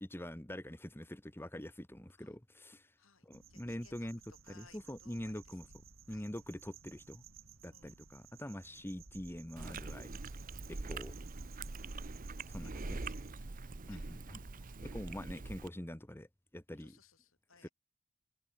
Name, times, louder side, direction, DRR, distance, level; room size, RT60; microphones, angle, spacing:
voice 1, 0.0-2.9 3.2-4.2 4.5-5.6 6.1-7.2 7.6-10.2 10.7-11.1 12.5-13.0 13.9-14.4 14.8-16.3 16.5-17.0 17.6-17.7, left 1 dB, 10° left, 1.5 m, -44 dB
voice 2, 3.0-5.7 6.1-6.3 7.7-8.0 8.7-8.9 11.7-12.0 12.8-13.5 13.9-14.5 16.8-17.7, left 5 dB, 70° left, 5.5 m, -65 dB
sound 1, 3.3-13.3, right 7 dB, 70° right, 3.7 m, -58 dB
Chewing mastication, 9.6-15.7, right 3 dB, 40° right, 0.9 m, -43 dB
head